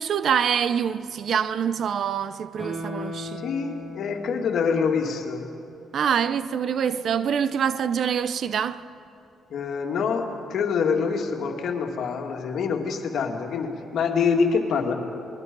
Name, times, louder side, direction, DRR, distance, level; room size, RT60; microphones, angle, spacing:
voice 1, 0.0-3.4 5.9-8.9, right 8 dB, 60° right, 0.8 m, -25 dB
Guitar, 2.6-5.8 6.2-6.3, left 1 dB, 25° right, 7.5 m, -38 dB
voice 2, 3.4-5.5 9.5-14.9, left 5 dB, 65° left, 2.6 m, -25 dB
28.5 x 21.5 x 5.5 m
cardioid pair, 90°, 0 cm